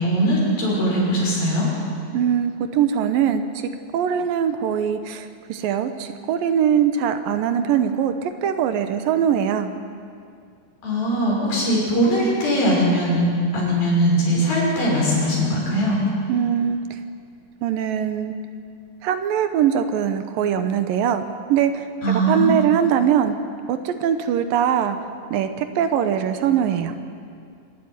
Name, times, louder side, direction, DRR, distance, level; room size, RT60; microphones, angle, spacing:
voice 1, 0.0-1.7 10.8-13.2 13.5-16.0 22.0-22.6, equal, 75° left, -4 dB, 7.9 m, -20 dB
voice 2, 2.1-3.4 3.9-9.7 16.3-16.8 17.6-18.4 19.0-21.2 21.5-23.3 23.7-25.0 25.3-26.9, right 8 dB, 75° right, 9 dB, 2.6 m, -21 dB
26.5 x 12.5 x 9.7 m, 2.3 s
omnidirectional pair, 4.2 m